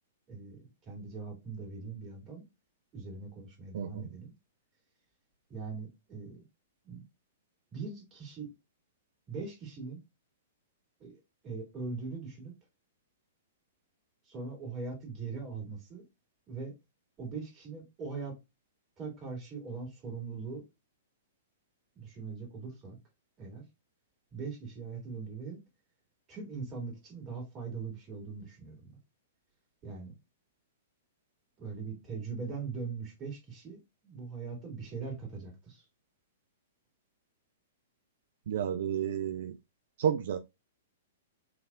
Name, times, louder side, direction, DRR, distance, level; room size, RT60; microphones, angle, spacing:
voice 1, 0.3-2.4 2.9-4.3 5.5-6.4 6.8-7.0 7.7-8.5 9.3-10.0 11.0-11.2 11.4-12.5 14.3-16.0 16.5-16.7 17.2-18.4 19.0-20.6 21.9-23.0 23.4-23.6 24.3-25.6 26.3-29.0 29.8-30.1 31.6-35.8, right 4 dB, 30° right, 2.5 m, -41 dB
voice 2, 3.7-4.1 38.5-39.5 40.0-40.4, right 9 dB, 60° right, 0.4 m, -31 dB
4.8 x 3.3 x 2.3 m
figure-of-eight pair, 110°, 0 cm